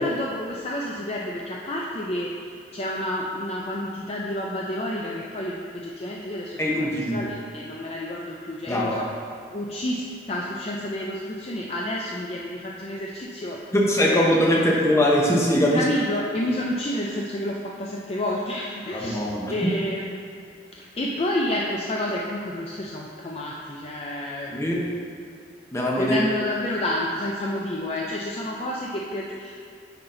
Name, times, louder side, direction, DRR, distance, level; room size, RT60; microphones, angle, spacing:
voice 1, 0.0-9.1 9.5-14.7 15.7-20.0 21.0-24.7 26.0-29.6, left 1 dB, 35° left, -2 dB, 0.4 m, -30 dB
voice 2, 6.6-7.2 8.7-9.0 13.7-15.8 18.9-19.5 24.5-24.9 25.7-26.2, equal, 15° left, -3 dB, 0.9 m, -21 dB
9.9 x 4.0 x 3.8 m, 2.3 s
head